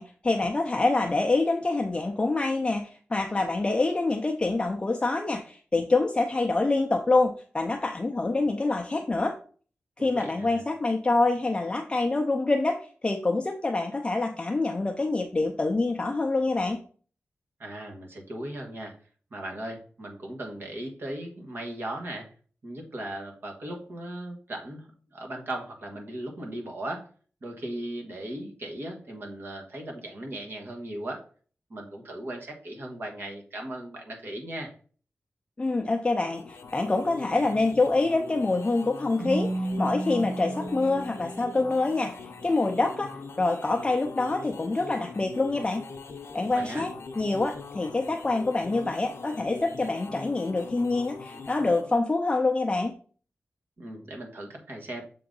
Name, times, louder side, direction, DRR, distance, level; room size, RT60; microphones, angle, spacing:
voice 1, 0.0-9.3 10.0-16.8 35.6-43.1 43.4-45.8 46.3-52.9, left 3 dB, 20° left, 3 dB, 0.5 m, -26 dB
voice 2, 10.0-10.6 17.6-18.9 19.3-22.3 22.6-27.1 27.4-31.2 31.7-34.7 46.5-46.9 53.8-55.0, right 1 dB, 55° right, 1 dB, 1.5 m, -37 dB
sound 1, 36.2-52.0, left 4 dB, 75° left, 0.8 m, -42 dB
Keyboard (musical), 39.2-41.9, right 1 dB, 25° right, 1.3 m, -33 dB
6.9 x 3.8 x 3.9 m, 0.42 s
wide cardioid pair, 125°, 5 cm